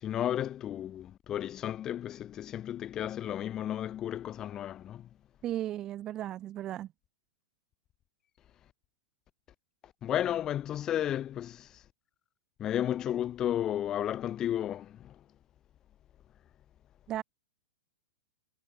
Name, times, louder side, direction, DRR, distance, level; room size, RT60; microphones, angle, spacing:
voice 1, 0.0-5.1 10.0-11.7 12.6-15.1, left 11 dB, 25° left, 5.8 m, -33 dB
voice 2, 5.4-6.9 17.1-17.2, right 12 dB, 30° right, 5.7 m, -35 dB
hypercardioid pair, 130°, 2 cm